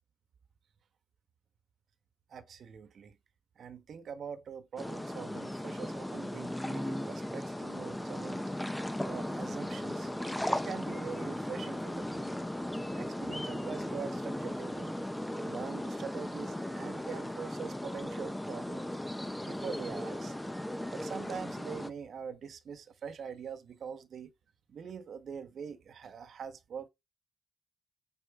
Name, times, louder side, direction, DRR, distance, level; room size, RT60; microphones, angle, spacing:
voice 1, 2.3-3.2 3.6-8.5 9.0-10.1 10.5-12.3 12.9-15.1 15.4-19.0 19.4-20.3 20.9-24.3 24.7-26.9, right 6 dB, 65° right, 1.3 m, -43 dB
sound 1, 4.8-21.9, left 1 dB, 5° left, 0.7 m, -37 dB
9.1 x 4.6 x 3.7 m
wide cardioid pair, 145°, 0 cm